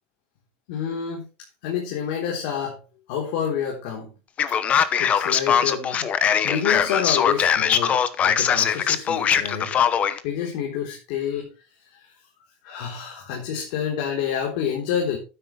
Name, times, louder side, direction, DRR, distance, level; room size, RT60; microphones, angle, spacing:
voice 1, 0.7-1.3 1.6-2.8 3.1-4.1 4.5-4.6 5.0-6.1 6.4-9.8 10.2-11.5 11.9-12.1 12.6-15.2, left 8 dB, 90° left, 0 dB, 3.9 m, -28 dB
Male speech man speaking, 4.4-10.2, left 8 dB, 30° left, 0.9 m, -21 dB
12.0 x 9.9 x 3.3 m, 0.32 s
cardioid pair, 170°, 5 cm